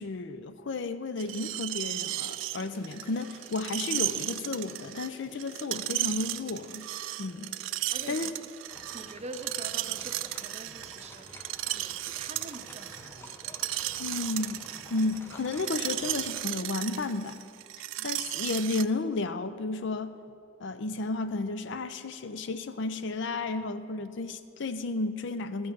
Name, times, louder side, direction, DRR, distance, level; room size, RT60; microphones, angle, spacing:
voice 1, 0.0-6.9 7.2-7.5 8.1-8.3 14.0-14.6 14.9-17.4 18.0-20.1 20.6-25.7, left 3 dB, 65° left, 12 dB, 0.5 m, -33 dB
Screech, 1.2-18.8, right 15 dB, 70° right, 0.3 m, -35 dB
sound 1, 2.1-17.4, equal, 40° left, 2.1 m, -56 dB
voice 2, 7.9-8.3 8.7-13.6 18.0-18.3, right 2 dB, 35° right, 7 dB, 0.6 m, -45 dB
sound 2, 8.7-16.4, left 1 dB, 10° left, 0.6 m, -51 dB
13.5 x 5.5 x 7.0 m, 2.4 s
head